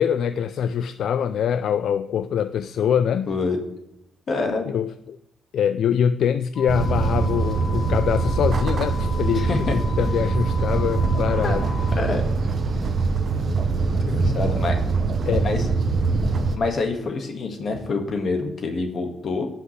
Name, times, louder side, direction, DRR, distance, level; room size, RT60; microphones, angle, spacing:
voice 1, 0.0-3.3 4.7-5.2 5.5-11.7 14.2-14.6 15.3-15.5, left 8 dB, 65° left, 13 dB, 0.3 m, -24 dB
voice 2, 3.3-3.6 4.3-4.7 9.3-9.8 11.4-11.6 12.0-12.2 13.3-13.5 13.9-14.8 15.4-15.6 16.5-19.5, left 3 dB, 45° left, 4 dB, 1.7 m, -26 dB
sound 1, 6.5-12.0, left 5 dB, 25° left, 1.0 m, -37 dB
sound 2, 6.7-16.6, right 4 dB, 40° right, 0.8 m, -23 dB
16.0 x 5.8 x 3.2 m, 0.83 s
cardioid pair, 140°, 0 cm